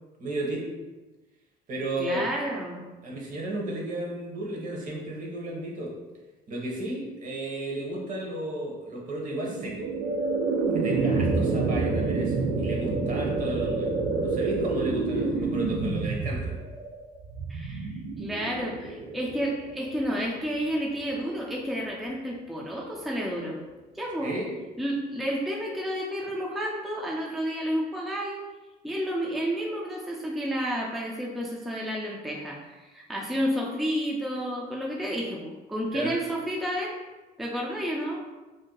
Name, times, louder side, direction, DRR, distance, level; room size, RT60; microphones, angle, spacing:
voice 1, 0.2-0.7 1.7-2.2 3.0-5.9 6.5-9.9 10.7-13.9 14.2-16.6 24.2-24.6 35.9-36.1, right 1 dB, 50° right, -2 dB, 0.9 m, -33 dB
voice 2, 2.0-2.8 17.5-17.9 18.2-23.6 23.9-24.3 24.8-28.4 28.8-37.0 37.4-38.2, equal, ahead, -3 dB, 0.4 m, -31 dB
sound 1, 9.4-20.6, right 3 dB, 75° right, 0.5 m, -28 dB
2.6 x 2.1 x 3.8 m, 1.2 s
cardioid pair, 110°, 17 cm